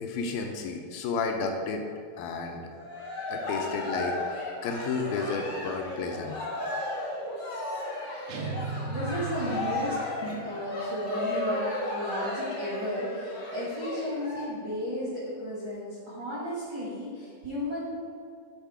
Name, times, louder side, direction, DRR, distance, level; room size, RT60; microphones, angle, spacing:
voice 1, 0.0-1.8 2.2-2.6 3.3-6.4 10.2-10.6, left 4 dB, 80° left, 3 dB, 2.2 m, -32 dB
Cheering, 2.7-14.4, left 2 dB, 50° left, 1.0 m, -34 dB
sound 1, 8.3-10.3, right 3 dB, 80° right, 2.6 m, -36 dB
voice 2, 8.9-9.9 10.4-17.9, equal, 55° right, -7 dB, 1.2 m, -34 dB
9.7 x 3.6 x 4.8 m, 2.3 s
omnidirectional pair, 4.6 m